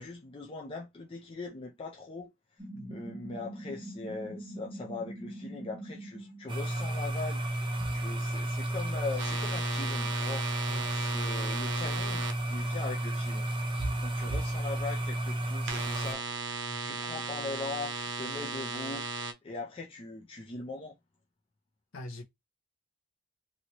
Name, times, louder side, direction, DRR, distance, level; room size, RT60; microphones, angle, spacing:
voice 1, 0.0-2.3 2.9-7.5 7.9-10.4 10.9-13.5 14.0-16.6 16.8-19.0 19.4-20.9, left 3 dB, 25° left, 0.4 m, -40 dB
sound 1, 2.6-6.5, right 1 dB, 5° right, 1.1 m, -43 dB
sound 2, 6.5-16.1, right 1 dB, 25° right, 0.6 m, -32 dB
sound 3, 9.2-12.3 15.7-19.3, right 4 dB, 60° right, 0.6 m, -36 dB
voice 2, 21.9-22.2, left 1 dB, 65° left, 0.7 m, -43 dB
2.8 x 2.6 x 2.9 m
head